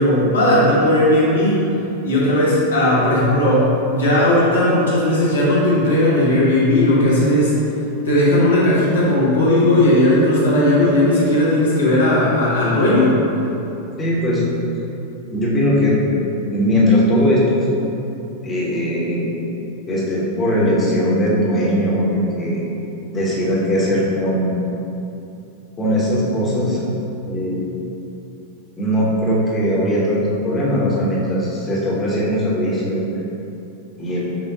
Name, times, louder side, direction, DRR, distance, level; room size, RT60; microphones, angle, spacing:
voice 1, 0.0-1.6 2.0-7.5 8.0-13.2, left 1 dB, 70° left, -8 dB, 1.1 m, -16 dB
voice 2, 14.0-14.4 15.3-16.0 16.5-17.7 18.4-19.3 19.9-22.6 23.1-24.6 25.8-26.8 27.2-27.7 28.7-33.0 34.0-34.3, equal, 20° left, -7 dB, 0.9 m, -19 dB
6.3 x 2.2 x 2.7 m, 2.9 s
figure-of-eight pair, 90°, 0 cm